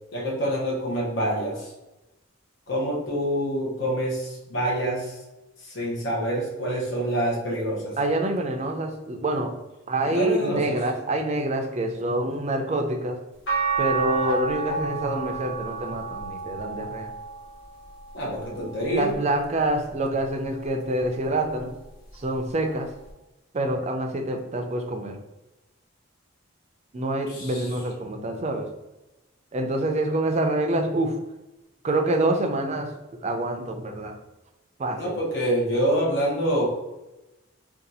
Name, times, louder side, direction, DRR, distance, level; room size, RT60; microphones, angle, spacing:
voice 1, 0.1-1.7 2.7-5.2 5.6-8.0 10.0-10.8 18.1-19.1 27.3-27.7 35.0-36.7, right 1 dB, 65° left, -3 dB, 0.8 m, -26 dB
voice 2, 8.0-9.5 9.9-13.2 13.8-17.1 18.8-21.7 22.2-22.9 23.5-25.1 26.9-28.7 29.5-31.2 31.8-32.9 33.2-34.1 34.8-35.1, right 1 dB, 35° right, 4 dB, 0.4 m, -26 dB
sound 1, 13.5-19.8 20.3-21.7 23.1-23.2, right 5 dB, 85° left, 1.2 m, -32 dB
2.7 x 2.3 x 4.0 m, 1.0 s
head